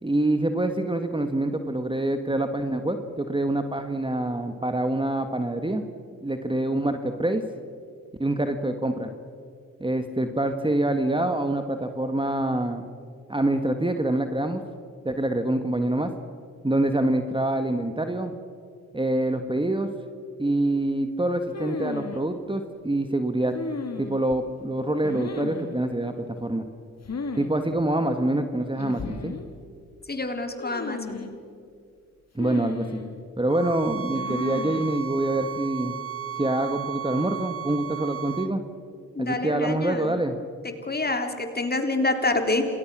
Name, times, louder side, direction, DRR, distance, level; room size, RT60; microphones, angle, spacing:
voice 1, 0.0-5.8 6.2-7.4 8.2-9.1 9.8-12.9 13.3-14.6 15.1-16.1 16.6-18.4 18.9-19.9 20.4-23.5 24.0-26.6 27.4-29.3 32.4-33.0 33.4-36.0 36.4-38.6 39.2-40.4, right 1 dB, 15° right, 7 dB, 1.8 m, -26 dB
sound 1, 21.5-22.2 23.5-24.4 25.0-25.8 27.0-27.5 27.8-27.9 28.8-29.5 30.6-31.4 32.4-33.2 34.1-34.9, left 4 dB, 45° left, 2.7 m, -34 dB
voice 2, 30.1-31.3 39.1-40.2 40.6-42.6, left 2 dB, 25° left, 6 dB, 3.6 m, -27 dB
sound 2, 33.5-38.5, right 9 dB, 35° right, 1.3 m, -34 dB
28.0 x 20.5 x 6.3 m, 2.3 s
hypercardioid pair, 40°, 37 cm